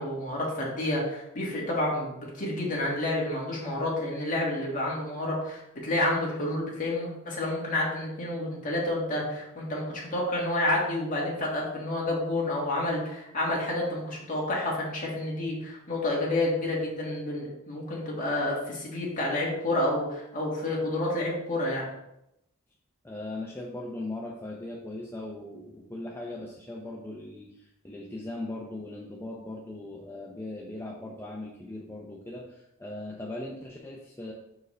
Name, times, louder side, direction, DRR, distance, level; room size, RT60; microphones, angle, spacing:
voice 1, 0.0-21.9, left 1 dB, 40° left, -4 dB, 1.8 m, -29 dB
voice 2, 23.0-34.3, left 2 dB, 10° left, -2 dB, 0.5 m, -39 dB
6.2 x 4.7 x 3.2 m, 0.85 s
head